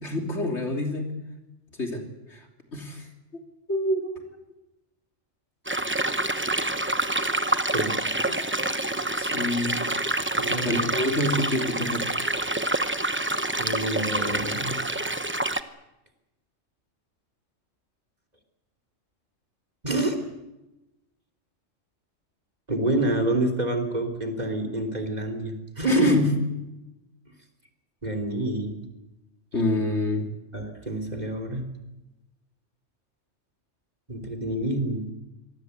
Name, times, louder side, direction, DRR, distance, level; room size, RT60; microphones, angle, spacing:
voice 1, 0.0-1.1 1.8-2.0 2.3-2.4 2.7-3.0 3.3-3.4 3.7-4.1 9.2-9.7 10.6-12.1 25.8-26.3 29.5-30.3, left 1 dB, 60° left, 3 dB, 3.5 m, -27 dB
sound 1, 5.7-15.6, right 1 dB, 10° right, 0.8 m, -27 dB
voice 2, 7.7-8.4 10.4-11.0 13.6-14.8 19.8-20.2 22.7-26.2 28.0-28.8 30.5-31.6 34.1-35.0, right 1 dB, 35° right, 7 dB, 3.4 m, -27 dB
25.5 x 19.0 x 8.1 m, 0.97 s
omnidirectional pair, 1.3 m